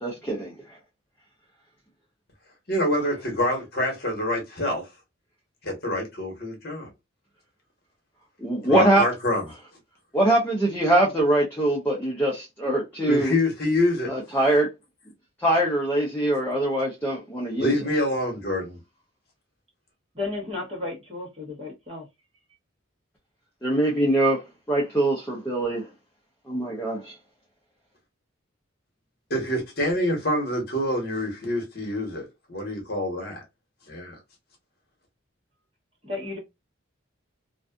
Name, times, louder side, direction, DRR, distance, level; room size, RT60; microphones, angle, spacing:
voice 1, 0.0-0.5 8.4-9.1 10.1-13.3 14.1-14.7 15.4-17.7 23.6-24.4 24.7-25.8 26.5-27.1, right 1 dB, 10° left, 0.6 m, -23 dB
voice 2, 2.7-4.8 5.6-6.9 8.6-9.4 13.0-14.1 17.6-18.8 29.3-33.4 33.9-34.2, left 1 dB, 50° left, 1.1 m, -26 dB
voice 3, 20.1-22.1 36.0-36.4, left 3 dB, 30° right, 1.1 m, -33 dB
2.5 x 2.4 x 2.3 m
head